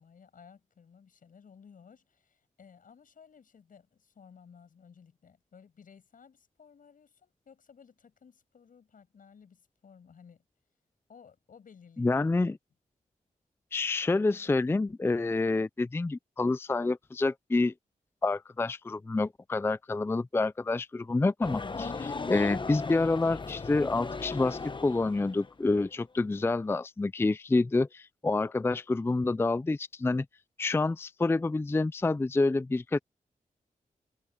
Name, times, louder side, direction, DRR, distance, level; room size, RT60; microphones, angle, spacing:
voice 1, 0.0-10.4 11.1-12.2, left 6 dB, 75° left, 7.1 m, -56 dB
voice 2, 12.0-12.6 13.7-17.7 18.2-30.3 30.6-33.0, left 3 dB, 15° left, 0.4 m, -28 dB
sound 1, 21.4-25.9, left 4 dB, 35° left, 0.9 m, -37 dB
cardioid pair, 75°, 14 cm